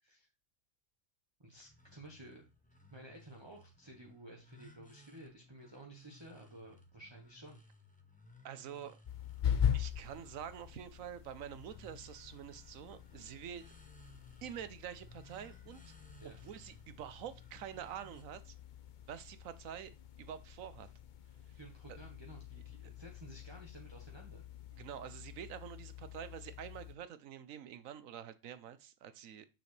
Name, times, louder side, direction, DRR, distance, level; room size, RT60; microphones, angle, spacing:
voice 1, 1.4-2.4 2.9-7.6 16.2-16.4 21.6-24.4, right 1 dB, 20° right, 1.1 m, -53 dB
sound 1, 1.6-18.2, left 1 dB, 5° left, 0.8 m, -61 dB
voice 2, 8.4-9.0 9.7-13.6 14.4-15.9 16.2-18.5 19.1-20.9 21.5-21.6 21.9-22.0 22.8-22.9 24.7-29.4, right 9 dB, 85° right, 1.2 m, -47 dB
sound 2, 9.0-27.0, left 9 dB, 50° left, 0.6 m, -42 dB
6.9 x 6.1 x 3.2 m
omnidirectional pair, 1.4 m